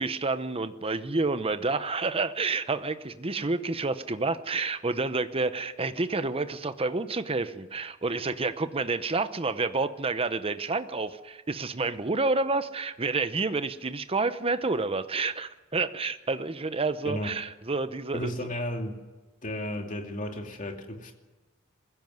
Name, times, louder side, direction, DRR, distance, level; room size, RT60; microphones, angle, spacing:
voice 1, 0.0-18.3, right 3 dB, 25° right, 11 dB, 0.9 m, -29 dB
voice 2, 18.1-19.0 19.4-21.2, left 1 dB, 35° left, 3 dB, 2.6 m, -34 dB
21.5 x 16.0 x 9.4 m, 1.2 s
head